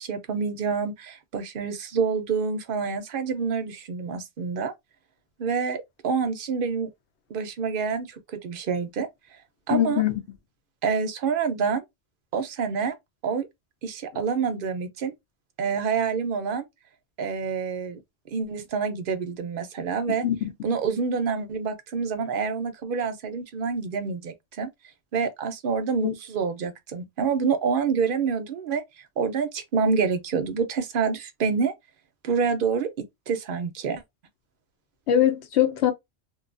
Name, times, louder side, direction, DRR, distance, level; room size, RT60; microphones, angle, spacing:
voice 1, 0.0-4.7 5.4-6.9 7.3-9.1 9.7-10.0 10.8-11.8 12.3-12.9 13.2-13.5 13.8-15.1 15.6-16.6 17.2-18.0 18.3-20.3 20.6-24.7 25.1-28.8 29.2-31.7 32.2-34.0, right 5 dB, 55° right, 0.7 m, -27 dB
voice 2, 9.7-10.2 20.2-20.5 26.0-26.1 35.1-35.9, left 11 dB, 75° left, 0.9 m, -22 dB
2.6 x 2.3 x 2.5 m
omnidirectional pair, 1.2 m